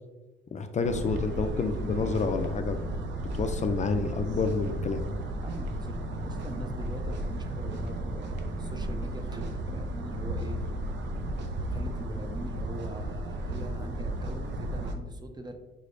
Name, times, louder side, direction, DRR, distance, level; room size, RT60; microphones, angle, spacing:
voice 1, 0.5-2.8 3.3-5.1, left 4 dB, 35° left, 7 dB, 0.4 m, -29 dB
sound 1, 0.8-14.9, right 1 dB, 65° right, 0.6 m, -34 dB
voice 2, 5.4-10.6 11.7-15.6, right 1 dB, 20° right, 6 dB, 0.5 m, -42 dB
5.3 x 3.2 x 2.5 m, 1.1 s
cardioid pair, 90°, 20 cm